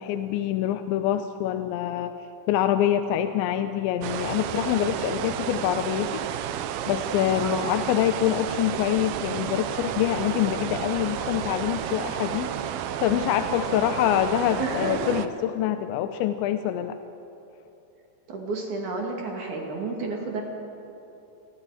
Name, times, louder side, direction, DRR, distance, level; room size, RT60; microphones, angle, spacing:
voice 1, 0.0-2.1 2.5-6.2 6.9-17.0, left 11 dB, 80° left, 8 dB, 2.9 m, -25 dB
sound 1, 4.0-15.3, right 10 dB, 85° right, 2.2 m, -31 dB
voice 2, 7.4-7.7 14.6-15.1 18.3-20.4, right 3 dB, 50° right, 0 dB, 3.0 m, -31 dB
sound 2, 9.6-14.6, left 3 dB, 60° left, 4.6 m, -42 dB
29.0 x 22.0 x 4.9 m, 2.9 s
omnidirectional pair, 5.4 m